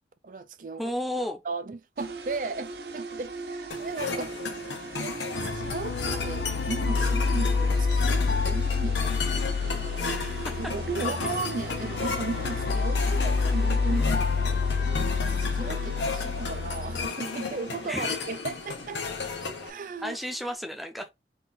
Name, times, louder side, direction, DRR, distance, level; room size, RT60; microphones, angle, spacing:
voice 1, 0.2-0.9 1.4-4.4 5.0-10.2 10.6-15.1 15.4-19.0 19.6-20.2, right 4 dB, 45° right, 0.4 m, -36 dB
voice 2, 0.8-1.4 10.0-10.7 11.0-11.3 17.8-18.2 20.0-21.1, equal, ahead, 0.6 m, -34 dB
sound 1, 2.0-20.6, right 3 dB, 65° right, 0.7 m, -41 dB
sound 2, 3.7-19.7, left 4 dB, 90° left, 1.0 m, -35 dB
sound 3, 5.3-17.1, left 4 dB, 75° left, 0.4 m, -28 dB
3.9 x 2.6 x 3.9 m
head